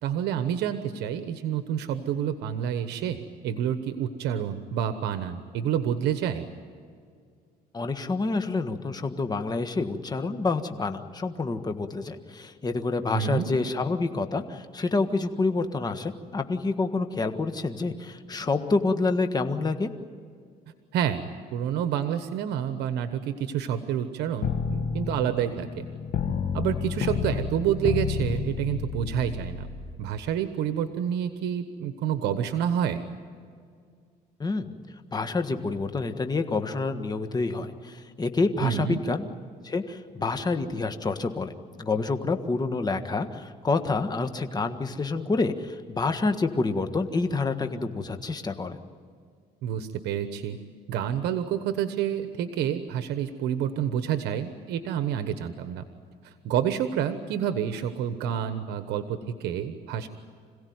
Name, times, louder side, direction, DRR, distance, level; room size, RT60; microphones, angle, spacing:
voice 1, 0.0-6.5 13.1-13.5 20.9-25.9 26.5-29.7 30.0-33.0 38.6-39.0 49.6-50.6 50.9-55.8 56.2-60.1, right 9 dB, 80° right, 9 dB, 1.2 m, -28 dB
voice 2, 7.7-19.9 34.4-34.7 35.1-39.3 39.6-48.8, left 3 dB, 25° left, 7 dB, 1.6 m, -28 dB
sound 1, 24.4-29.9, left 7 dB, 55° left, 1.8 m, -30 dB
26.5 x 17.0 x 9.5 m, 2.1 s
cardioid pair, 110°, 17 cm